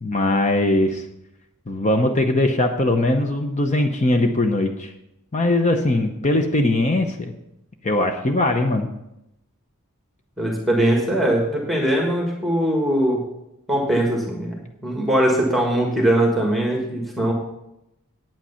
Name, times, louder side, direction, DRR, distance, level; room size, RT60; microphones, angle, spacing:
voice 1, 0.0-1.0 1.7-4.9 5.3-7.3 7.8-8.9, left 2 dB, 30° left, 5 dB, 0.7 m, -20 dB
voice 2, 10.4-13.2 13.7-17.3, right 1 dB, ahead, -2 dB, 1.6 m, -21 dB
8.9 x 8.9 x 5.7 m, 0.86 s
head